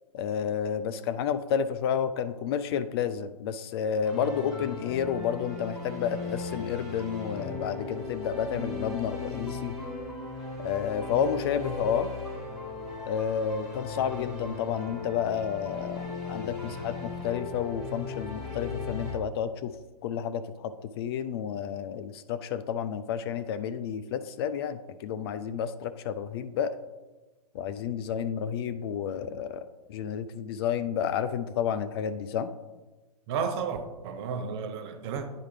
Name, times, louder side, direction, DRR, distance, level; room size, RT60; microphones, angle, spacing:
voice 1, 0.1-9.7 10.6-12.1 13.0-19.7 20.0-26.7 27.5-29.6 29.9-32.5, left 8 dB, 40° left, 0.4 m, -30 dB
sound 1, 4.0-19.1, left 4 dB, 5° right, 1.7 m, -37 dB
voice 2, 33.3-35.3, right 6 dB, 40° right, 0.8 m, -32 dB
9.6 x 4.7 x 3.2 m
figure-of-eight pair, 115°, 20 cm